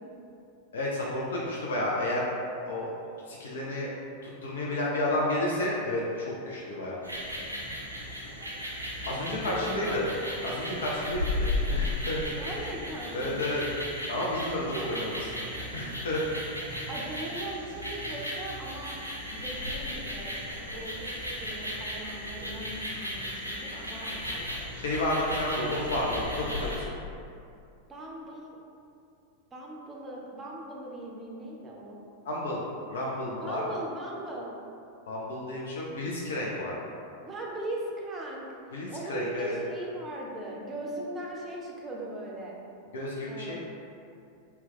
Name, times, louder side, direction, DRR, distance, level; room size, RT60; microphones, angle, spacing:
voice 1, 0.7-2.3 2.6-2.9 3.3-3.9 4.2-7.0 9.0-10.1 10.4-12.6 13.1-13.6 14.1-16.2 16.8-16.9 24.7-26.9 32.2-33.6 35.1-36.8 38.7-39.6 42.9-43.6, left 1 dB, 65° left, -4 dB, 0.4 m, -31 dB
sound 1, 7.0-26.8, left 1 dB, 85° right, 0.5 m, -35 dB
voice 2, 9.5-10.0 12.4-13.4 14.6-15.2 16.9-19.0 19.3-20.4 20.7-21.0 21.4-24.8 27.9-28.6 29.5-32.0 33.4-34.5 37.2-38.5 38.9-42.6 43.3-43.6, right 1 dB, 20° right, -3 dB, 0.5 m, -39 dB
2.8 x 2.2 x 3.5 m, 2.5 s
figure-of-eight pair, 90°, 0 cm